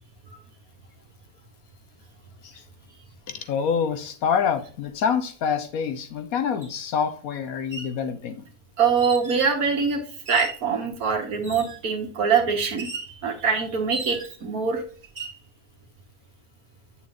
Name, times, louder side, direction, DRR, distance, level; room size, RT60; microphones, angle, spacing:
voice 1, 3.3-8.4, left 7 dB, 65° left, 8 dB, 1.2 m, -26 dB
sound 1, 6.6-6.7 7.5-8.0 9.0-9.5 10.2-10.7 11.4-11.9 12.8-13.1 13.9-14.5 15.0-15.4, right 4 dB, 35° right, 1.6 m, -37 dB
voice 2, 8.8-10.0 10.3-14.8, right 6 dB, 70° right, 3 dB, 1.8 m, -24 dB
7.9 x 7.1 x 2.5 m, 0.41 s
omnidirectional pair, 1.7 m